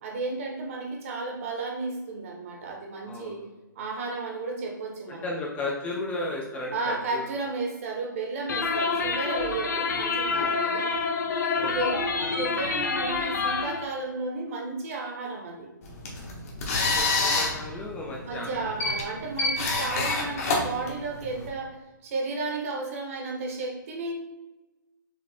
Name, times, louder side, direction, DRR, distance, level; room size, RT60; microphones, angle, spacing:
voice 1, 0.0-3.4 3.7-5.3 6.7-10.9 11.6-15.7 18.2-21.8 22.0-24.1, right 3 dB, 40° right, 1 dB, 1.1 m, -33 dB
voice 2, 3.1-3.4 5.1-7.2 10.3-10.6 11.5-11.9 16.8-18.7 20.3-20.4, left 2 dB, 15° left, -2 dB, 0.5 m, -35 dB
sound 1, 8.5-13.8, left 4 dB, 60° left, 0.7 m, -27 dB
sound 2, 15.8-21.5, left 3 dB, 45° left, 1.2 m, -28 dB
4.9 x 3.1 x 3.4 m, 1.1 s
hypercardioid pair, 150°, 11 cm